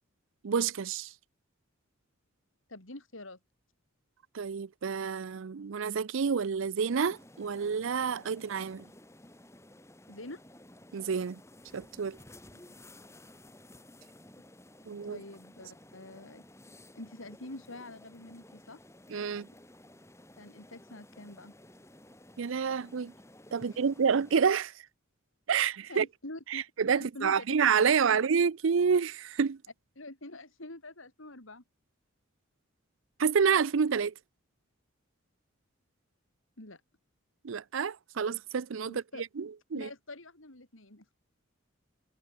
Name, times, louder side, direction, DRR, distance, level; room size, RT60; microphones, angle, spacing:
voice 1, 0.4-1.1 4.3-8.8 10.9-11.4 11.7-12.2 14.9-15.2 19.1-19.5 22.4-23.1 23.5-24.7 25.5-26.1 26.5-29.6 33.2-34.1 37.4-39.0 39.4-39.9, right 6 dB, 65° right, 0.5 m, -28 dB
voice 2, 2.7-3.4 10.1-10.4 12.7-12.8 15.0-16.4 16.9-18.8 20.4-21.5 23.7-23.8 25.9-26.6 27.0-27.4 28.1-28.2 30.0-31.6 36.6-36.8 38.9-39.2 39.7-41.1, left 2 dB, 70° left, 3.9 m, -46 dB
sound 1, 6.9-24.4, left 1 dB, 15° left, 2.8 m, -55 dB
head